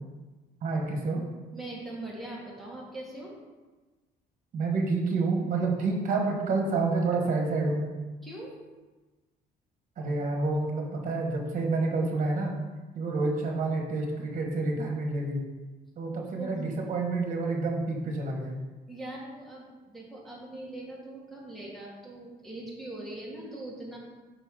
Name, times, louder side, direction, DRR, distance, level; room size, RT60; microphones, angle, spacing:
voice 1, 0.6-1.2 4.5-7.8 10.0-12.5 12.9-15.4 16.0-18.6, right 3 dB, 50° right, 1 dB, 1.3 m, -28 dB
voice 2, 1.5-3.3 8.2-8.6 16.4-16.6 18.9-24.0, right 1 dB, ahead, -4 dB, 1.7 m, -41 dB
5.5 x 5.1 x 3.7 m, 1.2 s
cardioid pair, 110°, 17 cm